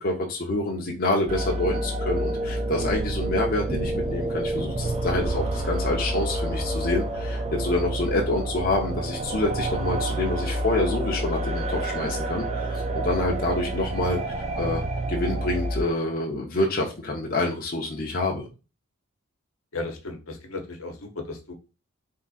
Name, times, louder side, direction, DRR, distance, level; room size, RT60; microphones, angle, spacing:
voice 1, 0.0-14.8 15.1-18.5, left 2 dB, 45° left, 0 dB, 0.7 m, -27 dB
sound 1, 1.3-15.8, right 1 dB, 35° right, 0.5 m, -28 dB
voice 2, 19.7-21.5, left 3 dB, 80° left, 3 dB, 1.0 m, -35 dB
3.7 x 2.7 x 4.1 m, 0.32 s
head